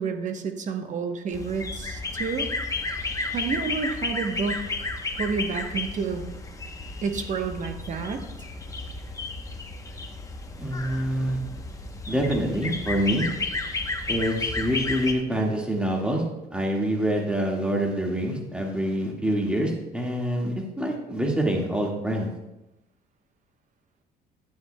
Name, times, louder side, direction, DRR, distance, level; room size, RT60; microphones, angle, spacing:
voice 1, 0.0-2.5 3.3-4.6 5.1-6.4 7.0-8.2, right 5 dB, 45° right, 6 dB, 1.0 m, -29 dB
sound 1, 1.3-15.1, left 3 dB, 20° left, 0.9 m, -32 dB
voice 2, 10.6-11.4 12.1-13.3 14.1-16.2 16.5-22.3, equal, 5° right, -1 dB, 1.8 m, -26 dB
10.5 x 9.0 x 2.2 m, 0.94 s
cardioid pair, 110°, 17 cm